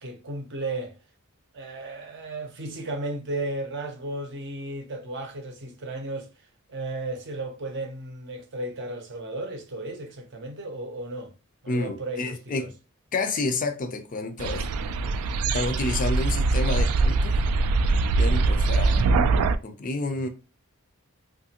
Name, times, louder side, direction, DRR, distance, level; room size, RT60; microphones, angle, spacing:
voice 1, 0.0-1.0 1.5-6.3 6.7-11.3 11.6-12.7 20.1-20.3, right 2 dB, 50° right, 0.6 m, -34 dB
voice 2, 11.7-12.7 13.1-15.1 15.5-17.4 18.2-19.0 19.6-20.3, left 3 dB, 35° left, 0.4 m, -30 dB
sound 1, 14.4-19.6, right 3 dB, 80° right, 0.3 m, -22 dB
2.8 x 2.4 x 2.8 m
head